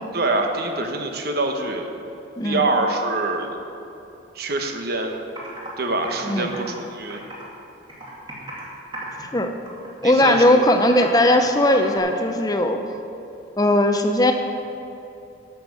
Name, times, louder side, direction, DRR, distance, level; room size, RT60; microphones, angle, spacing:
voice 1, 0.1-1.9 2.4-3.6 4.3-5.2 5.8-7.2 10.0-10.7, right 2 dB, 50° right, 4 dB, 1.1 m, -25 dB
Computer keyboard, 5.4-5.7 6.0-7.6 7.9-8.7 8.9-9.3 9.7-12.0, right 1 dB, 25° right, 2.3 m, -36 dB
voice 2, 9.2-9.5 10.0-12.8 13.6-14.3, left 1 dB, 20° left, 5 dB, 0.7 m, -18 dB
11.5 x 7.3 x 6.4 m, 2.9 s
head